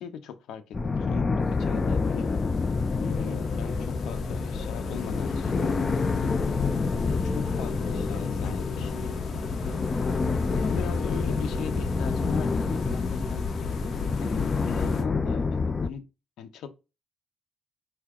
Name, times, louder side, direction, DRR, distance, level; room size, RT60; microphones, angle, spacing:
voice 1, 0.0-2.3 3.0-5.8 6.6-9.1 9.6-10.0 10.5-13.4 14.2-16.1 16.4-16.7, left 8 dB, 80° left, 0.8 m, -40 dB
sound 1, 0.7-15.9, left 4 dB, 30° left, 0.4 m, -28 dB
sound 2, 1.4-15.0, left 4 dB, 60° left, 1.1 m, -36 dB
4.7 x 2.8 x 3.5 m
cardioid pair, 90°, 0 cm